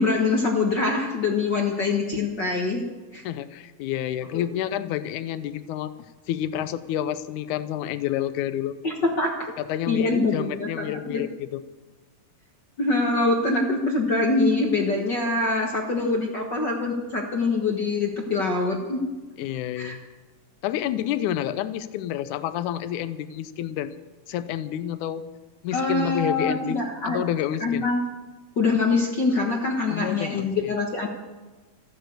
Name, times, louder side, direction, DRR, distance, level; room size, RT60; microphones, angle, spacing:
voice 1, 0.0-2.8 3.1-3.2 4.3-4.4 8.8-9.5 9.9-11.2 12.8-19.0 19.8-20.0 25.7-27.2 27.6-28.0 28.6-31.1, left 3 dB, 50° left, 1 dB, 1.3 m, -24 dB
voice 2, 3.2-5.9 6.3-8.7 9.6-11.6 19.4-20.0 20.6-23.9 24.3-25.2 25.6-27.9 29.9-30.7, left 11 dB, 75° left, 13 dB, 2.0 m, -29 dB
14.5 x 11.0 x 8.1 m, 1.2 s
omnidirectional pair, 3.9 m